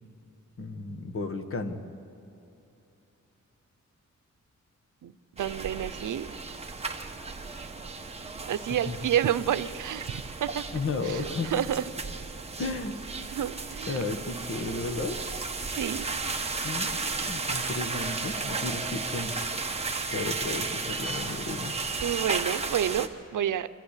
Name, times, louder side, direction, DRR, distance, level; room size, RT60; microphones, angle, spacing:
voice 1, 0.6-1.8 8.9-9.0 10.7-11.6 12.6-13.0 13.9-15.2 16.6-19.3 20.1-21.8, left 3 dB, 45° left, 6 dB, 1.4 m, -33 dB
voice 2, 5.0-6.3 8.5-10.7 11.0-11.8 13.3-14.1 15.7-16.1 22.0-23.7, right 10 dB, 90° right, 13 dB, 0.7 m, -29 dB
sound 1, 5.4-23.1, right 4 dB, 20° right, 1.0 m, -34 dB
sound 2, 6.7-7.3 8.4-8.8 9.8-10.3 11.6-12.0 13.2-14.1 15.6-16.0, right 1 dB, 10° left, 1.9 m, -53 dB
25.5 x 14.5 x 8.3 m, 2.9 s
wide cardioid pair, 150°, 30 cm